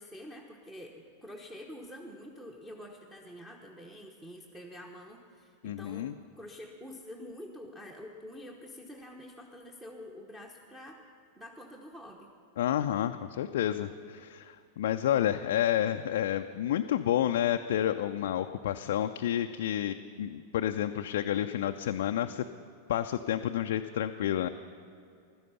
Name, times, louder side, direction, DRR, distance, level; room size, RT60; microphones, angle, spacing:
voice 1, 0.0-11.0 11.4-12.3, left 1 dB, 10° right, 1 dB, 1.1 m, -47 dB
voice 2, 5.6-6.1 12.6-22.5 22.9-24.5, left 11 dB, 55° left, 6 dB, 0.4 m, -30 dB
16.0 x 12.5 x 5.6 m, 2.5 s
figure-of-eight pair, 90°, 0 cm